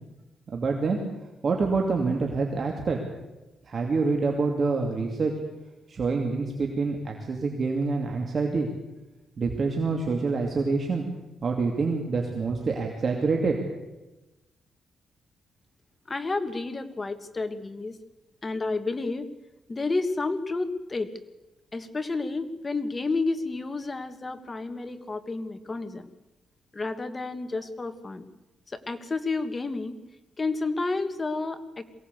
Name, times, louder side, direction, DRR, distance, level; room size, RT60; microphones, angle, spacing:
voice 1, 0.5-1.0 1.4-3.0 3.6-5.3 5.9-8.7 9.4-11.0 11.4-13.6, right 4 dB, 45° right, 2 dB, 2.6 m, -26 dB
voice 2, 16.1-18.0 18.4-19.3 19.7-21.1 21.7-26.1 26.7-28.2 28.7-30.0 30.4-31.8, left 3 dB, 25° left, 9 dB, 1.6 m, -30 dB
22.5 x 17.5 x 8.3 m, 1.0 s
cardioid pair, 120°, 0 cm